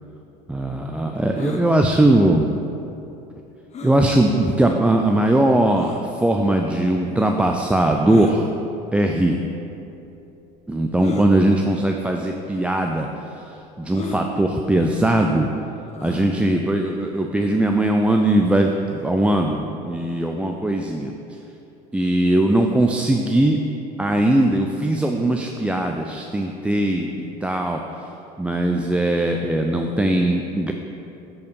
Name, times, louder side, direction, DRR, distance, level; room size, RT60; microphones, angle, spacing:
voice 1, 0.5-2.5 3.8-8.5 8.9-9.4 10.7-13.1 13.8-15.5 16.0-21.1 21.9-23.6 24.0-27.8 28.4-30.7, right 1 dB, 5° right, 2 dB, 0.4 m, -20 dB
sound 1, 1.3-1.6 3.7-4.0 4.8-4.9 5.8-6.0 8.0-8.4 9.4-9.5 11.0-11.3 12.2-12.4 12.6-12.7 13.9-14.2 15.9-16.3, left 5 dB, 35° left, 0.8 m, -33 dB
8.1 x 4.7 x 5.3 m, 2.9 s
supercardioid pair, 95°, 20 cm